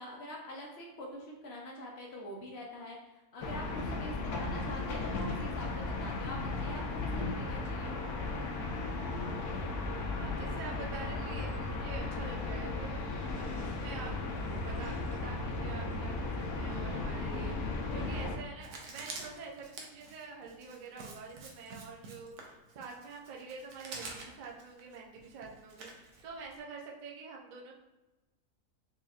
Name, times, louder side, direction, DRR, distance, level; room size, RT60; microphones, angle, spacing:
voice 1, 0.0-7.9, left 1 dB, 65° left, -1 dB, 0.7 m, -45 dB
sound 1, 3.4-18.4, left 3 dB, 85° left, 1.2 m, -36 dB
voice 2, 10.1-13.0 13.3-14.2 14.6-27.7, right 4 dB, 70° right, 0 dB, 0.4 m, -47 dB
Writing, 18.6-26.6, right 3 dB, 85° right, 1.2 m, -48 dB
4.8 x 2.9 x 2.3 m, 1.1 s
omnidirectional pair, 1.6 m